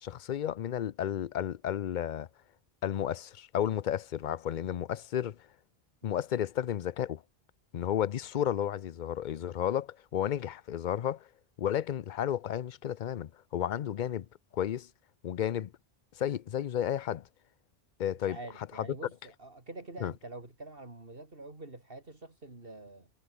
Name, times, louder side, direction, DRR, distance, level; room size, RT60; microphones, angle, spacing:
voice 1, 0.0-2.3 2.8-5.4 6.0-7.2 7.7-11.3 11.6-14.3 14.5-14.9 15.2-15.7 16.2-17.3 18.0-18.4 20.0-20.1, left 10 dB, 55° left, 0.6 m, -32 dB
voice 2, 18.2-23.1, right 2 dB, 60° right, 3.9 m, -46 dB
omnidirectional pair, 1.0 m